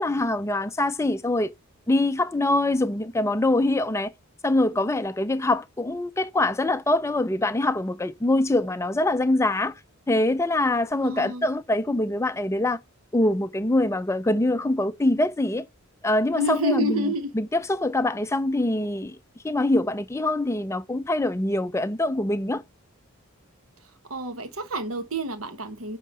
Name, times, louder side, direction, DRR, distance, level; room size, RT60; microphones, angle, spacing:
voice 1, 0.0-1.5 1.9-4.1 4.4-9.7 10.1-12.8 13.1-15.7 16.0-19.2 19.4-22.6, left 2 dB, 15° left, 0.4 m, -24 dB
voice 2, 11.0-11.5 16.4-17.3 23.8-26.0, equal, 70° right, 1.2 m, -28 dB
9.5 x 3.7 x 5.3 m
head